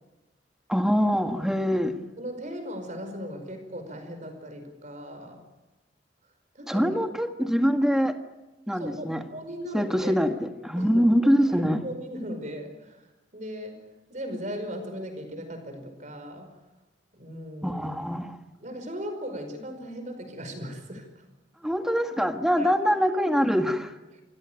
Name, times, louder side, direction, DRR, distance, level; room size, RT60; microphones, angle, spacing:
voice 1, 0.7-1.9 6.7-8.2 8.7-9.2 9.7-11.8 17.6-18.4 21.6-23.9, equal, 5° right, 6 dB, 1.6 m, -24 dB
voice 2, 2.2-5.4 6.6-7.0 8.7-10.2 10.8-11.0 11.5-13.8 14.1-16.6 17.1-17.8 18.6-21.3 22.6-22.7 24.1-24.2, equal, 40° right, 6 dB, 5.2 m, -38 dB
27.5 x 16.0 x 9.3 m, 1.1 s
head